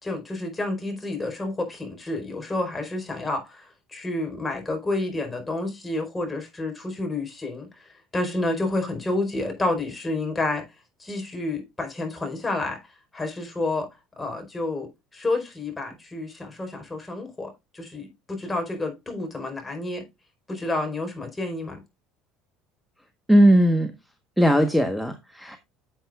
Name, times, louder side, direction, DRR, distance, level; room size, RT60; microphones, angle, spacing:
voice 1, 0.0-7.7 8.1-10.6 11.0-12.8 13.1-13.9 14.2-20.0 20.5-21.8, left 2 dB, 15° left, 4.8 m, -29 dB
voice 2, 23.3-23.9 24.4-25.6, equal, ahead, 1.3 m, -18 dB
11.5 x 7.5 x 2.5 m
figure-of-eight pair, 65°, 0 cm